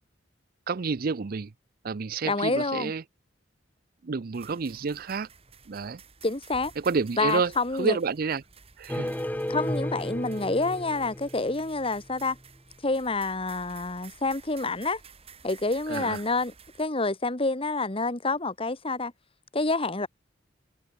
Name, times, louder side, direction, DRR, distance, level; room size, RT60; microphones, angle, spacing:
voice 1, 0.7-1.5 1.8-3.0 4.0-5.3 5.7-6.0 6.8-7.5 7.8-8.4 8.8-9.1 15.9-16.2, right 4 dB, 50° right, 0.5 m, -29 dB
voice 2, 2.2-2.9 6.2-6.7 7.2-8.0 9.5-12.4 12.8-15.0 15.4-19.1 19.5-20.1, left 3 dB, 30° left, 1.6 m, -28 dB
sound 1, 4.3-16.9, right 5 dB, 30° right, 2.3 m, -53 dB
sound 2, 8.9-11.9, left 1 dB, 10° left, 1.1 m, -33 dB
head